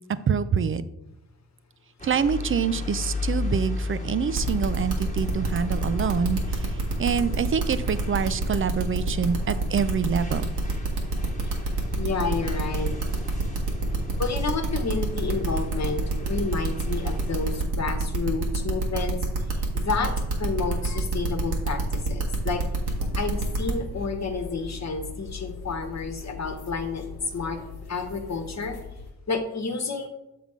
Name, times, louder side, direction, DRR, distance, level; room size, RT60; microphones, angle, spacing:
voice 1, 0.3-0.8 2.0-10.4, right 6 dB, 35° right, 14 dB, 0.4 m, -26 dB
sound 1, 2.0-17.6, left 3 dB, 20° left, 1.4 m, -36 dB
sound 2, 4.3-23.7, right 3 dB, 80° right, 1.5 m, -27 dB
voice 2, 12.0-12.9 14.2-19.2 19.5-22.6 23.1-27.0 27.3-27.6 27.9-28.8 29.3-30.1, left 4 dB, 45° left, 6 dB, 1.2 m, -30 dB
sound 3, 22.8-29.1, left 5 dB, 80° left, 1.1 m, -40 dB
7.0 x 3.7 x 4.9 m, 0.92 s
cardioid pair, 75°, 38 cm